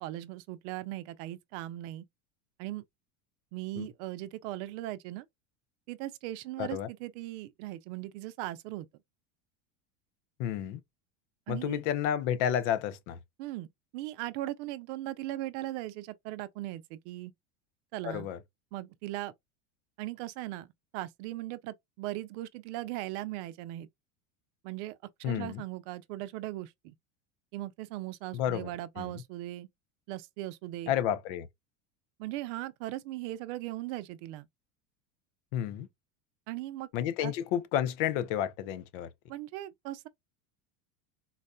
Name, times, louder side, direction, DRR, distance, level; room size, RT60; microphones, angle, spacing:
voice 1, 0.0-2.0 2.6-2.8 3.5-5.3 5.9-8.9 11.5-11.8 13.4-13.7 13.9-17.3 17.9-18.3 18.7-19.3 20.0-20.7 20.9-23.9 24.6-26.9 27.5-29.7 30.1-30.9 32.2-34.5 36.5-36.9 37.2-37.3 39.3-40.1, right 16 dB, 65° right, 0.5 m, -38 dB
voice 2, 6.6-6.9 10.4-10.8 11.5-13.2 18.0-18.4 25.2-25.6 28.3-28.7 29.0-29.2 30.9-31.5 35.5-35.9 36.9-39.1, left 10 dB, 70° left, 0.6 m, -31 dB
4.0 x 2.2 x 2.5 m
supercardioid pair, 135°, 39 cm